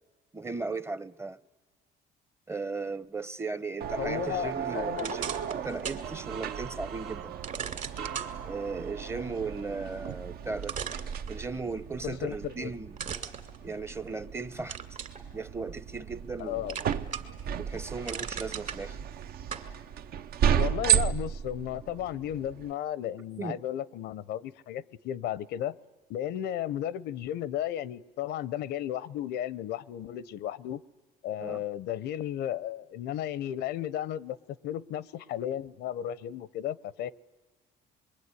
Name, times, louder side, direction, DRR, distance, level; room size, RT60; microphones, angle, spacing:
voice 1, 0.3-1.4 2.5-7.4 8.4-10.8 11.3-13.0 13.6-14.8 15.3-16.8 17.6-19.0 23.4-23.6 31.4-31.6, right 4 dB, 15° right, 0.8 m, -36 dB
sound 1, 3.8-22.7, right 9 dB, 65° right, 0.8 m, -34 dB
voice 2, 4.0-5.2 12.0-12.7 16.4-16.8 20.5-25.8 26.1-30.8 31.2-34.4 34.6-37.1, left 11 dB, 80° left, 0.8 m, -34 dB
sound 2, 4.9-6.1 6.5-6.6 7.4-8.3 10.1-10.2 10.6-11.7 13.0-14.2 14.7-15.2 15.7-16.4 16.7-17.4 17.8-18.8 19.5-19.7, right 7 dB, 45° right, 2.4 m, -37 dB
sound 3, 6.0-9.6, right 7 dB, 90° right, 1.7 m, -44 dB
26.0 x 22.0 x 9.7 m
cardioid pair, 110°, 17 cm